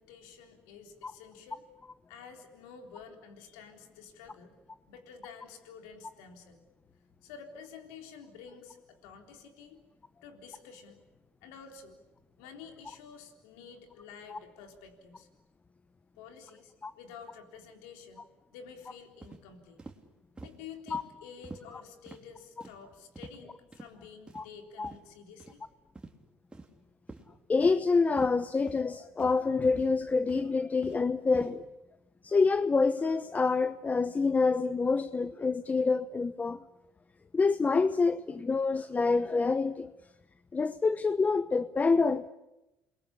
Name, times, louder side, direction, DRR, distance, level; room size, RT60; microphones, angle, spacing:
voice 1, 0.0-1.7 2.1-4.5 4.9-6.6 7.2-9.8 10.2-11.0 11.4-12.0 12.4-15.3 16.2-18.2 18.5-19.8 20.4-25.6, left 6 dB, 90° left, 3.7 m, -50 dB
sound 1, 19.2-19.4 19.8-20.0 20.4-20.6 20.9-21.0 21.4-21.6 22.1-22.2 22.6-22.8 23.1-23.4 23.7-23.9 24.3-24.5 24.8-25.0 25.4-25.6 25.9-26.1 26.5-26.8 27.1-27.2 27.6-27.8 28.2-28.3 28.7-28.9 29.2-29.4 29.7-30.0 30.3-31.0 31.3-31.5, right 3 dB, 15° right, 3.4 m, -46 dB
voice 2, 27.5-31.6 32.2-36.6 37.3-39.9 40.5-42.3, left 4 dB, 30° left, 1.0 m, -27 dB
29.0 x 22.0 x 8.6 m
supercardioid pair, 70°, 5 cm